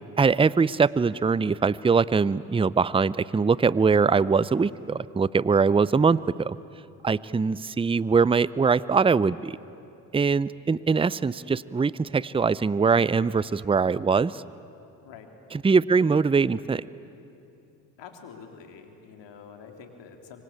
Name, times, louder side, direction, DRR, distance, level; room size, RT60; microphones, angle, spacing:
voice 1, 0.2-6.6 7.0-9.6 10.1-14.4 15.6-16.9, right 5 dB, 10° right, 19 dB, 0.6 m, -22 dB
voice 2, 18.0-20.4, left 6 dB, 65° left, 4 dB, 3.7 m, -46 dB
27.0 x 24.0 x 8.9 m, 2.7 s
hypercardioid pair, 55°, 47 cm